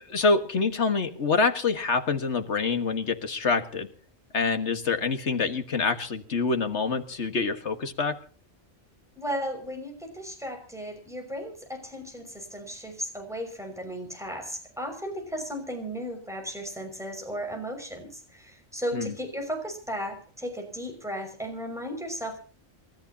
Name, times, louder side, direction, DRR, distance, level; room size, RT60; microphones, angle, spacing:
voice 1, 0.0-3.9 4.3-8.2 18.9-19.1, left 4 dB, 75° left, 7 dB, 1.9 m, -26 dB
voice 2, 9.2-22.5, equal, ahead, 3 dB, 5.9 m, -35 dB
29.0 x 13.5 x 2.9 m, 0.39 s
omnidirectional pair, 1.2 m